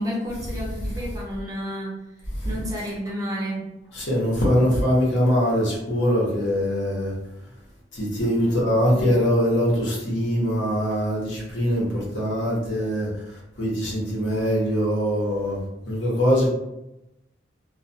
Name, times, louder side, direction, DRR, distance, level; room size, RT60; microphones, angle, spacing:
voice 1, 0.0-2.0 2.4-3.7 8.3-9.2, equal, 20° right, -3 dB, 0.5 m, -31 dB
voice 2, 3.9-7.1 7.9-13.1 13.6-15.6 15.9-16.5, equal, 70° left, -4 dB, 0.9 m, -22 dB
2.3 x 2.2 x 2.6 m, 0.91 s
head